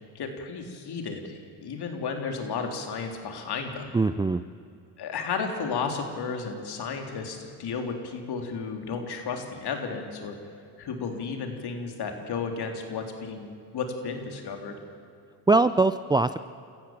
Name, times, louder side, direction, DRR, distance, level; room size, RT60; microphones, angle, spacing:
voice 1, 0.2-3.9 5.0-10.4 10.8-14.8, left 5 dB, 50° left, 4 dB, 3.5 m, -33 dB
voice 2, 3.9-4.4 15.5-16.4, right 3 dB, 10° right, 12 dB, 0.5 m, -21 dB
27.5 x 14.5 x 7.5 m, 2.5 s
hypercardioid pair, 65°, 50 cm